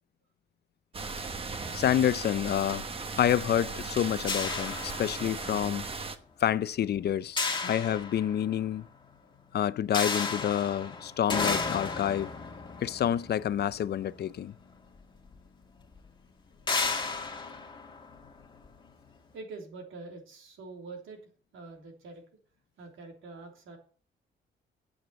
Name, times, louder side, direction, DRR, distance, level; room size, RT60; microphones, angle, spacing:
sound 1, 0.9-6.2, right 4 dB, 30° right, 1.0 m, -37 dB
voice 1, 1.7-2.9 3.2-5.9 6.4-8.9 9.5-12.3 12.8-14.6, left 10 dB, 55° left, 0.5 m, -28 dB
sound 2, 4.3-5.6 7.4-8.7 9.9-14.4 15.3-15.4 15.8-16.0 16.7-18.7, left 4 dB, 25° left, 2.0 m, -33 dB
voice 2, 19.3-21.2 21.5-22.2 22.8-23.8, right 3 dB, 85° right, 3.2 m, -45 dB
9.2 x 8.0 x 6.8 m
cardioid pair, 130°, 20 cm